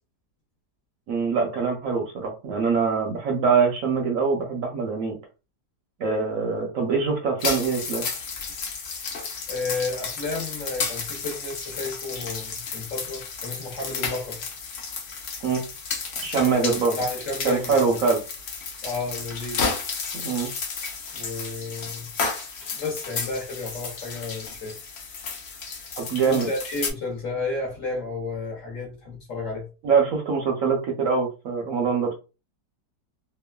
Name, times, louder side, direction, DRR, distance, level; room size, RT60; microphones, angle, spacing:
voice 1, 1.1-5.2 6.0-8.1 15.4-15.6 16.2-17.0 17.4-18.2 20.1-20.5 26.0-26.5 29.8-32.1, right 5 dB, 65° right, 0.9 m, -23 dB
sound 1, 7.4-26.9, left 5 dB, 80° left, 0.5 m, -32 dB
voice 2, 9.5-14.4 16.6-18.0 18.8-19.6 21.1-22.1 22.4-24.8 26.2-29.7, left 3 dB, 55° left, 1.1 m, -32 dB
3.0 x 2.1 x 2.2 m
omnidirectional pair, 1.8 m